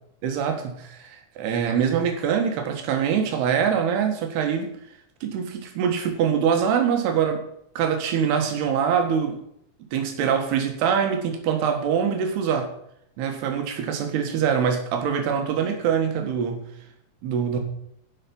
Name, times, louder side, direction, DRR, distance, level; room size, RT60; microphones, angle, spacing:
voice 1, 0.2-4.7 5.2-7.4 7.8-9.4 9.9-12.7 13.2-16.6 17.2-17.6, right 7 dB, 85° right, 5 dB, 3.5 m, -24 dB
15.0 x 5.8 x 5.4 m, 0.73 s
omnidirectional pair, 4.5 m